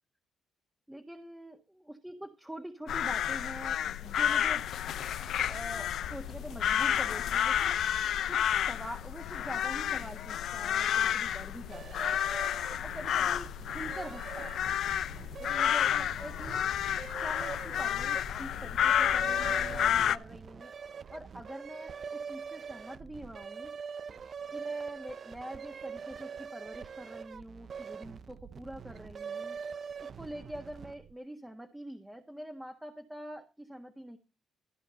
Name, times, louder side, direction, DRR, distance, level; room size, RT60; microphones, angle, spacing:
voice 1, 0.9-4.7 5.5-7.8 8.3-12.2 12.8-14.6 15.4-16.7 17.2-23.8 24.5-29.6 30.0-34.2, right 1 dB, 5° right, 3 dB, 1.6 m, -45 dB
sound 1, 2.9-20.2, left 10 dB, 70° left, 0.6 m, -30 dB
sound 2, 11.7-31.1, right 6 dB, 50° right, 0.6 m, -43 dB
14.0 x 5.0 x 6.4 m, 0.29 s
cardioid pair, 90°, 0 cm